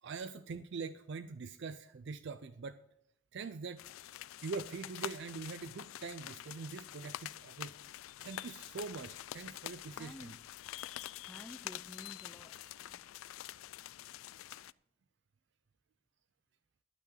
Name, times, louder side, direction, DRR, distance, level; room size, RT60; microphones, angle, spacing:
voice 1, 0.0-2.8 3.3-3.8 4.4-7.8 8.2-10.4, right 4 dB, 55° right, 12 dB, 0.4 m, -43 dB
sound 1, 3.8-14.7, left 13 dB, 75° left, 0.3 m, -46 dB
voice 2, 9.9-10.4 11.2-13.2, equal, 5° left, 5 dB, 0.5 m, -53 dB
12.0 x 5.9 x 8.4 m, 0.81 s
head